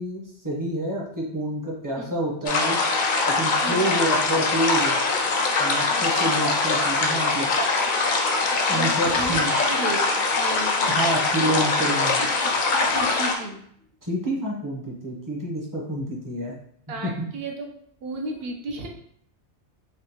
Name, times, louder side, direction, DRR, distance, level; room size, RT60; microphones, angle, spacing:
voice 1, 0.0-2.8 3.3-5.0 5.6-7.5 8.7-9.5 10.9-12.2 14.0-16.5 17.0-17.3, right 1 dB, 20° right, -3 dB, 0.6 m, -28 dB
sound 1, 2.5-13.3, left 3 dB, 60° left, 0.5 m, -23 dB
voice 2, 6.0-6.5 8.7-11.9 12.2-13.6 16.9-17.7 18.0-18.9, right 2 dB, 65° right, 2 dB, 0.8 m, -34 dB
3.6 x 2.3 x 2.8 m, 0.68 s
omnidirectional pair, 1.2 m